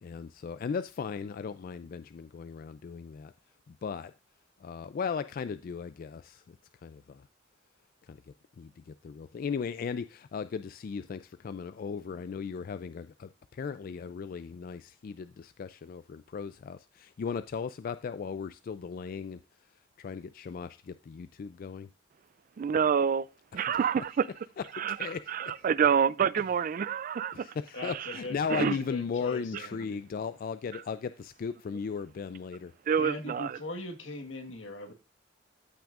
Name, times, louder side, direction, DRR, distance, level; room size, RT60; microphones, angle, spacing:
voice 1, 0.0-3.3 3.7-4.1 4.6-6.6 6.8-7.3 8.0-8.2 8.6-19.4 20.0-21.9 23.5-24.1 24.6-25.7 27.3-32.7, left 6 dB, 50° left, 0.3 m, -37 dB
voice 2, 22.6-23.3 23.5-24.3 24.8-25.0 25.3-27.5 28.5-28.7 32.9-33.6, right 7 dB, 45° right, 0.3 m, -27 dB
voice 3, 27.7-30.0 33.0-34.9, left 2 dB, 85° left, 1.5 m, -40 dB
14.0 x 5.9 x 2.4 m
head